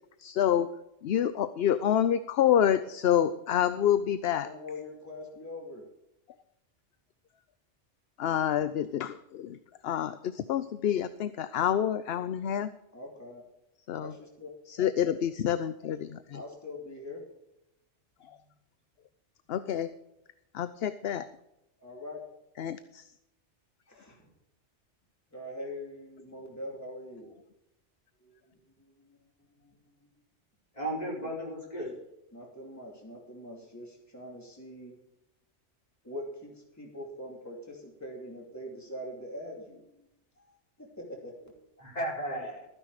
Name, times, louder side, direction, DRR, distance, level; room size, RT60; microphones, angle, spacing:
voice 1, 0.2-0.7 1.0-4.5 8.2-12.7 13.9-14.1 14.7-16.4 18.2-18.4 19.5-19.9 20.5-21.3 22.6-23.1, left 10 dB, 65° left, 12 dB, 0.8 m, -28 dB
voice 2, 4.4-5.8 12.9-13.4 14.0-14.5 16.3-17.2 21.8-22.2 23.9-24.2 25.3-27.4 28.2-28.6 29.0-29.2 29.6-30.0 32.3-34.9 36.0-40.1 40.4-41.7, left 1 dB, 15° left, -1 dB, 2.6 m, -43 dB
voice 3, 30.7-32.0 41.8-42.7, right 1 dB, 35° left, -4 dB, 4.8 m, -34 dB
13.5 x 9.8 x 4.8 m, 0.86 s
omnidirectional pair, 1.2 m